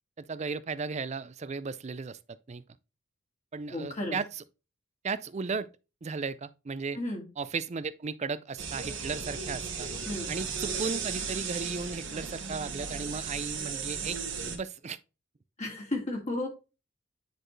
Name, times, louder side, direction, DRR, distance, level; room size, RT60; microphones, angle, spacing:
voice 1, 0.2-2.2 2.5-2.6 3.5-4.4 5.0-5.7 6.0-7.0 7.4-9.9 10.3-14.2 14.4-15.0, right 4 dB, 30° right, 0.4 m, -35 dB
voice 2, 3.7-4.2 6.9-7.3 10.1-10.3 15.6-16.5, left 1 dB, 35° left, 2.4 m, -33 dB
sound 1, 8.6-14.6, right 5 dB, 60° right, 1.7 m, -35 dB
9.9 x 4.3 x 3.2 m
head